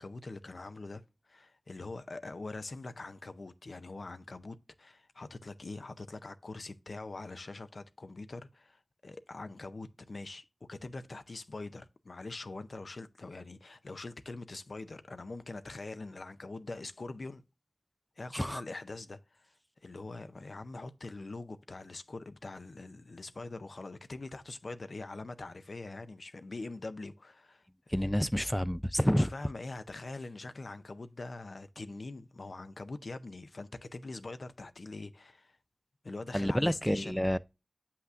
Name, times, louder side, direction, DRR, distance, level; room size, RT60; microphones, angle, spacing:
voice 1, 0.0-17.4 18.2-19.5 19.8-27.6 28.0-28.1 29.2-35.6 36.0-37.4, left 3 dB, 80° left, 0.5 m, -43 dB
voice 2, 27.9-29.3 36.3-37.4, equal, 5° left, 0.3 m, -28 dB
7.9 x 5.7 x 2.5 m
wide cardioid pair, 45°, 0 cm